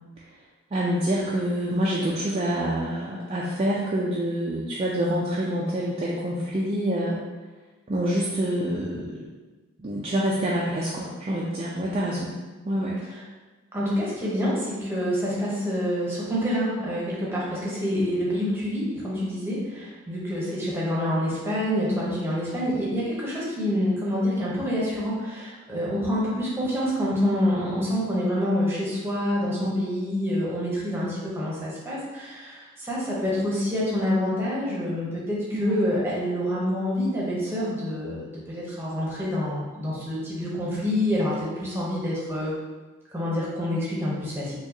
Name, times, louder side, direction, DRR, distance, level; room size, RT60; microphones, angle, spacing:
voice 1, 0.7-7.2 7.9-9.2 9.8-12.3 12.6-13.0 35.5-35.8, right 1 dB, 30° right, -5 dB, 0.4 m, -26 dB
voice 2, 13.7-42.5 43.1-44.6, equal, 10° right, -6 dB, 0.8 m, -27 dB
4.5 x 2.3 x 2.7 m, 1.2 s
head